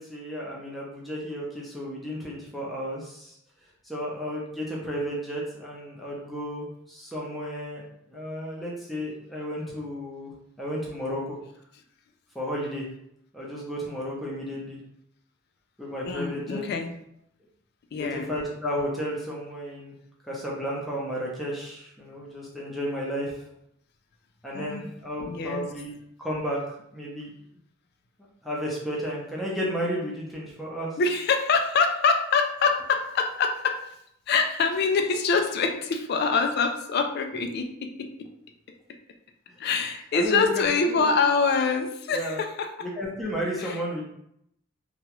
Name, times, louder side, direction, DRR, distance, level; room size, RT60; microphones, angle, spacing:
voice 1, 0.0-3.4 3.8-7.8 8.1-10.3 10.6-11.4 12.3-12.9 13.3-14.8 15.8-16.6 18.0-19.9 20.3-23.4 24.4-26.6 26.9-27.3 28.4-31.0 40.1-41.1 42.1-42.4 42.8-44.0, equal, ahead, -5 dB, 0.6 m, -33 dB
voice 2, 16.1-16.9 17.9-18.3 24.5-24.9 25.2-25.7 31.0-33.8 34.3-38.3 39.6-42.7 43.6-43.8, left 4 dB, 50° left, 6 dB, 0.3 m, -25 dB
2.9 x 2.3 x 2.9 m, 0.75 s
head